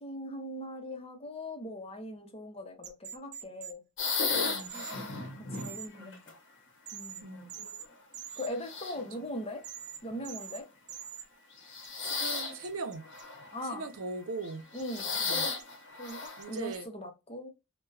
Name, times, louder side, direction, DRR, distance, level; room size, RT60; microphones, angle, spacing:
voice 1, 0.0-3.8 4.7-5.2 5.5-6.3 6.9-7.3 8.4-9.6 10.0-10.7 13.5-13.9 14.7-15.2 16.0-17.5, left 1 dB, 30° left, 0.7 m, -40 dB
sound 1, 2.8-3.7 4.6-4.9 5.5-5.9 6.9-7.2 7.5-7.8 8.1-8.5 9.6-10.0 10.2-10.6 10.9-11.2 11.8-13.2 14.8-15.6 16.1-16.8, right 9 dB, 35° right, 0.5 m, -44 dB
sound 2, 4.0-6.3 7.2-7.8 8.5-9.2 10.1-10.3 11.6-12.6 13.0-13.6 14.4-16.6, left 4 dB, 60° left, 0.8 m, -35 dB
voice 2, 4.4-4.8 6.0-6.2 7.2-7.5 12.0-13.1 13.7-14.6 15.2-15.5 16.4-16.9, right 3 dB, 75° right, 0.6 m, -40 dB
4.2 x 2.2 x 2.4 m
head